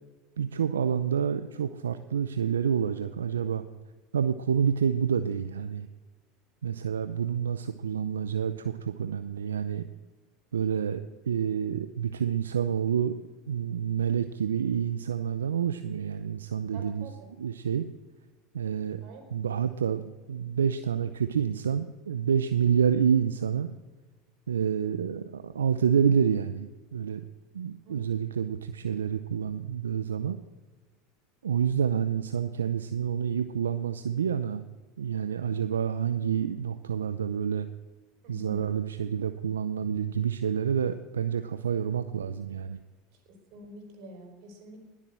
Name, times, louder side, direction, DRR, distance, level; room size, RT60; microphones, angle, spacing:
voice 1, 0.4-3.7 4.1-5.9 6.6-9.9 10.5-13.2 13.5-17.0 17.4-17.8 18.5-19.0 19.3-20.0 20.3-23.7 24.5-27.2 27.5-30.4 31.4-34.6 35.0-37.7 38.3-42.8, right 7 dB, 85° right, 11 dB, 0.6 m, -28 dB
voice 2, 16.7-17.3 19.0-19.5 27.8-28.1 38.2-38.7 43.1-44.8, equal, 60° right, 4 dB, 4.6 m, -47 dB
20.0 x 7.5 x 7.5 m, 1.3 s
hypercardioid pair, 85°, 0 cm